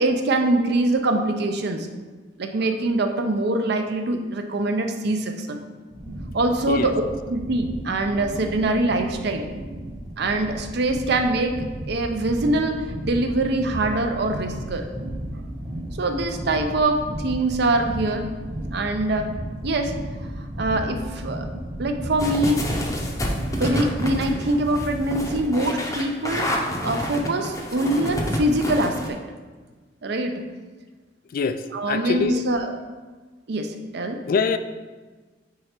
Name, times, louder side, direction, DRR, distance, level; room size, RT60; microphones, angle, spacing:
voice 1, 0.0-1.9 2.4-5.6 6.3-7.0 7.3-9.5 10.2-14.9 16.0-18.2 18.7-19.3 19.6-19.9 20.6-21.5 21.8-22.7 23.6-26.5 26.8-29.2 30.0-30.3 31.7-32.8 33.5-34.2, right 2 dB, 60° right, 5 dB, 0.6 m, -23 dB
sound 1, 5.9-25.4, right 1 dB, 25° right, 1.1 m, -34 dB
sound 2, 22.2-29.1, equal, 20° left, 0.7 m, -28 dB
voice 2, 31.3-32.4 34.3-34.6, left 5 dB, 50° left, 11 dB, 0.3 m, -24 dB
4.6 x 4.2 x 5.0 m, 1.3 s
head